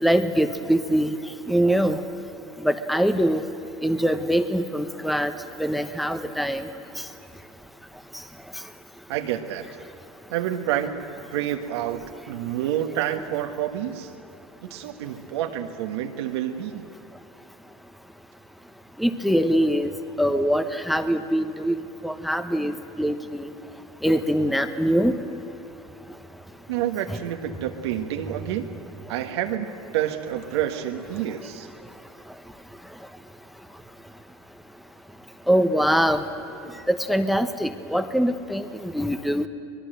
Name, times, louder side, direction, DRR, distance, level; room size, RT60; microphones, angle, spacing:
voice 1, 0.0-1.1 1.5-2.0 2.6-3.4 3.8-5.3 5.6-6.7 19.0-19.9 20.2-21.7 22.0-23.4 24.0-25.2 35.5-36.2 36.9-38.6 38.9-39.5, equal, ahead, 9 dB, 1.1 m, -23 dB
voice 2, 9.1-9.7 10.3-14.1 14.6-16.9 26.7-28.7 29.1-29.7 29.9-31.7, right 11 dB, 85° right, 4 dB, 1.4 m, -28 dB
23.5 x 21.0 x 7.8 m, 2.9 s
supercardioid pair, 100°, 14 cm